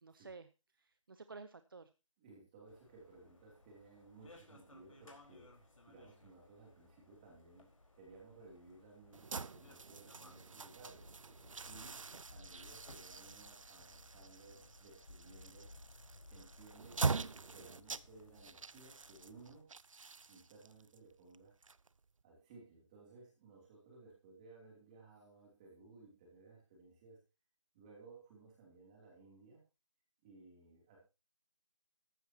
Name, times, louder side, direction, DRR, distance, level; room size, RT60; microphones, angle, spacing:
voice 1, 0.0-1.9, right 4 dB, 45° right, 12 dB, 0.7 m, -53 dB
voice 2, 2.2-11.1 11.6-15.7 16.3-19.7 20.3-21.5 22.2-27.2 27.7-29.6 30.2-31.0, right 3 dB, 15° right, -2 dB, 2.9 m, -59 dB
sound 1, 2.7-19.6, left 2 dB, 85° left, 4.6 m, -60 dB
sound 2, 9.1-22.2, right 4 dB, 85° right, 0.7 m, -44 dB
14.0 x 12.5 x 2.9 m, 0.28 s
figure-of-eight pair, 175°, 16 cm